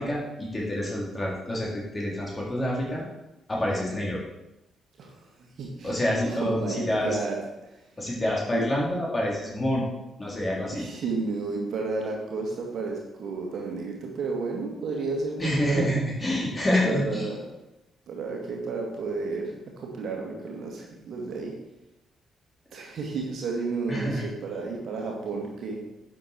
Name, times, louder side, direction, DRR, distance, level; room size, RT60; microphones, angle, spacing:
voice 1, 0.0-3.0 3.5-4.2 5.8-7.2 8.0-9.8 10.2-10.8 15.4-17.2 23.9-24.2, left 1 dB, 25° left, -3 dB, 4.0 m, -27 dB
voice 2, 5.0-6.0 6.3-7.8 8.5-8.7 10.7-15.9 16.8-17.4 18.1-21.5 22.7-25.8, right 4 dB, 55° right, 0 dB, 2.2 m, -32 dB
11.0 x 6.6 x 4.6 m, 0.92 s
figure-of-eight pair, 40°, 0 cm